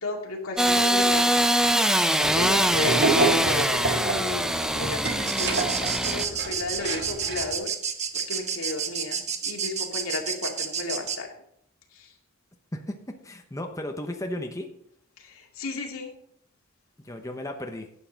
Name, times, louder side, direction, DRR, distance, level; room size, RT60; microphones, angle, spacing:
voice 1, 0.0-1.3 2.2-4.5 4.7-7.7 8.1-11.3 11.9-12.1 15.2-16.1, left 3 dB, 85° left, 1 dB, 2.3 m, -34 dB
Engine starting / Sawing, 0.6-6.2, right 1 dB, 5° right, 0.5 m, -23 dB
sound 1, 2.2-7.5, right 3 dB, 55° right, 1.6 m, -29 dB
sound 2, 5.3-11.2, right 7 dB, 35° right, 1.0 m, -30 dB
voice 2, 12.7-14.7 17.0-17.9, left 1 dB, 15° left, 4 dB, 0.8 m, -35 dB
11.5 x 8.4 x 3.9 m, 0.71 s
head